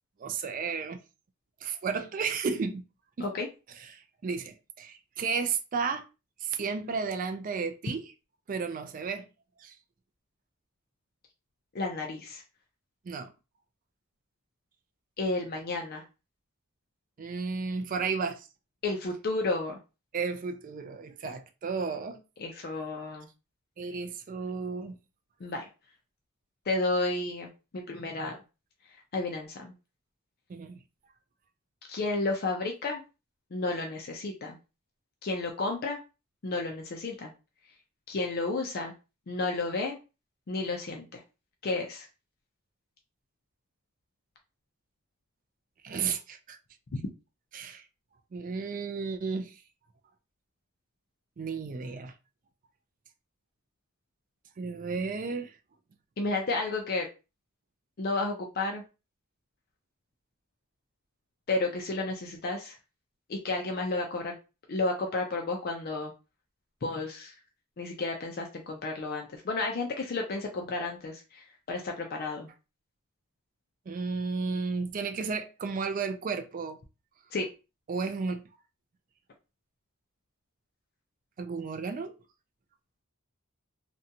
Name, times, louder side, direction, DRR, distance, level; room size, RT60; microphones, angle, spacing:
voice 1, 0.2-1.0 1.6-2.8 3.2-3.3 3.9-6.0 6.4-8.1 8.5-9.3 9.6-9.7 13.1-13.3 17.2-18.5 20.1-22.2 23.8-25.0 30.5-30.8 45.8-46.6 47.5-47.8 48.3-49.5 51.4-52.1 54.6-55.5 73.9-76.8 77.9-78.4 81.4-82.1, right 5 dB, 40° right, 0.3 m, -33 dB
voice 2, 11.7-12.4 15.2-16.0 18.8-19.8 22.4-23.3 25.4-25.6 26.7-28.4 29.1-29.7 31.9-33.0 33.5-34.6 35.2-36.0 36.4-37.3 38.1-38.9 39.3-40.0 40.5-41.2 41.6-42.1 56.2-57.1 58.0-58.8 61.5-62.8 63.3-64.4 64.7-66.1 66.8-67.3 67.8-72.5 77.3-77.5, left 3 dB, 50° left, 0.4 m, -32 dB
2.5 x 2.2 x 2.7 m
head